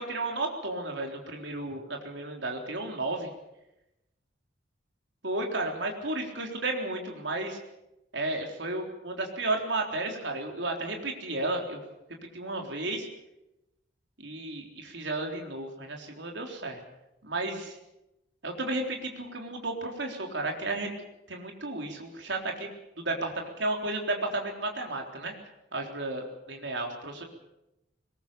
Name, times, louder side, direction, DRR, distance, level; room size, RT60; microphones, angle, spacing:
voice 1, 0.0-3.3 5.2-7.6 8.1-11.8 12.3-13.1 14.2-16.8 17.2-17.8 18.4-20.9 21.3-22.7 23.0-25.3 25.7-27.2, right 2 dB, 75° right, 2 dB, 3.8 m, -33 dB
22.0 x 20.5 x 7.0 m, 0.90 s
head